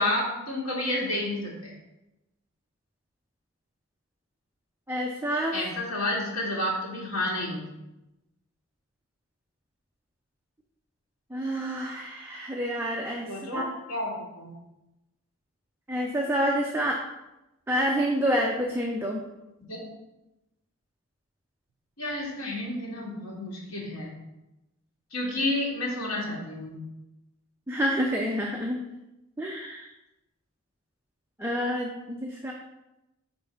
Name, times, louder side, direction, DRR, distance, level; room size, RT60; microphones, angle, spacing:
voice 1, 0.0-1.7 5.5-7.6 13.3-13.6 13.9-14.1 14.4-14.5 19.7-19.8 22.0-24.1 25.1-26.8, left 1 dB, 75° left, -4 dB, 2.3 m, -30 dB
voice 2, 4.9-5.6 11.3-13.7 15.9-17.0 17.7-19.2 27.7-28.9 29.4-29.9 31.4-32.5, equal, 10° right, -1 dB, 0.5 m, -28 dB
5.2 x 4.4 x 5.6 m, 0.95 s
head